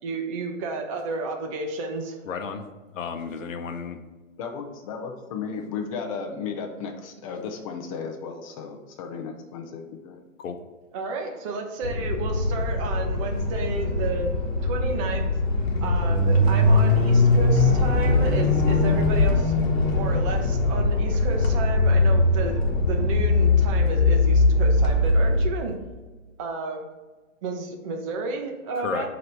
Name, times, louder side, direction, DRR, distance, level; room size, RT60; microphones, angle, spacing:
voice 1, 0.0-2.2 10.9-15.3 15.8-19.5 19.9-25.8 26.4-26.9 27.4-29.1, right 3 dB, 25° right, 3 dB, 0.7 m, -32 dB
voice 2, 2.3-2.6 2.9-4.0 10.4-10.6 28.8-29.1, left 6 dB, 75° left, 6 dB, 0.8 m, -32 dB
voice 3, 4.4-10.2, left 5 dB, 25° left, 2 dB, 0.5 m, -34 dB
sound 1, 11.8-25.5, left 2 dB, 50° left, 1.4 m, -21 dB
7.7 x 3.0 x 5.2 m, 1.2 s
hypercardioid pair, 145°, 40 cm